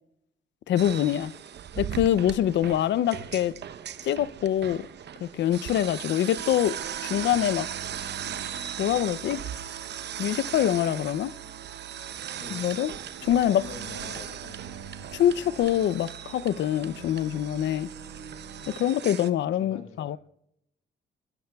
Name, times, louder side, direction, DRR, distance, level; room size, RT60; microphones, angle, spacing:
voice 1, 0.7-1.3 1.8-3.6 4.0-4.9 5.2-6.8 7.0-7.7 8.8-9.4 10.2-11.3 12.5-12.9 13.2-13.6 15.1-17.9 18.7-20.2, left 11 dB, 65° left, 0.5 m, -25 dB
sound 1, 0.8-19.3, right 9 dB, 60° right, 0.9 m, -38 dB
sound 2, 5.7-18.9, right 7 dB, 80° right, 1.7 m, -45 dB
voice 2, 13.2-14.8 19.6-20.2, left 5 dB, 85° left, 1.6 m, -46 dB
27.0 x 21.0 x 2.3 m
cardioid pair, 90°, 20 cm